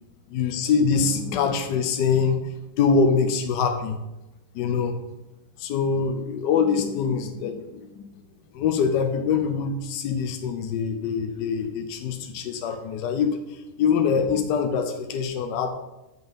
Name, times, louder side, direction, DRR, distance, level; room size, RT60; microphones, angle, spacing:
voice 1, 0.3-4.0 4.5-5.0 5.6-8.0 8.5-13.4 13.8-15.7, left 6 dB, 70° left, 6 dB, 1.2 m, -24 dB
7.9 x 6.1 x 3.6 m, 0.96 s
omnidirectional pair, 2.1 m